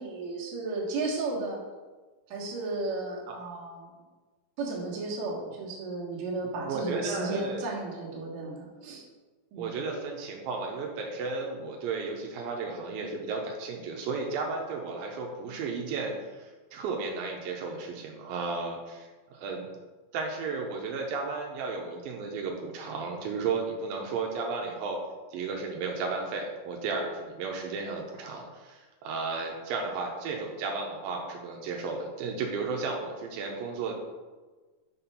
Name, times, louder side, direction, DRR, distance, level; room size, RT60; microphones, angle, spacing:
voice 1, 0.0-1.6 2.3-3.9 4.6-9.0 9.5-9.7, right 3 dB, 60° right, -3 dB, 2.4 m, -34 dB
voice 2, 6.7-7.7 9.6-19.7 20.1-25.0 25.3-33.9, right 4 dB, 85° right, 1 dB, 2.5 m, -34 dB
6.4 x 4.2 x 5.4 m, 1.3 s
omnidirectional pair, 4.1 m